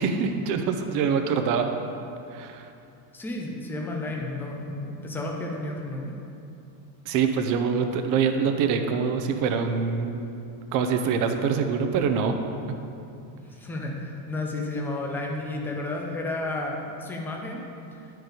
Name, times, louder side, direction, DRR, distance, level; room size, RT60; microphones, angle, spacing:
voice 1, 0.0-1.7 2.3-2.7 7.1-10.2 10.7-12.3, right 6 dB, 40° right, 5 dB, 0.6 m, -24 dB
voice 2, 3.1-6.1 13.3-17.6, left 2 dB, 5° left, 0 dB, 0.3 m, -32 dB
9.5 x 4.6 x 5.0 m, 2.7 s
cardioid pair, 150°, 49 cm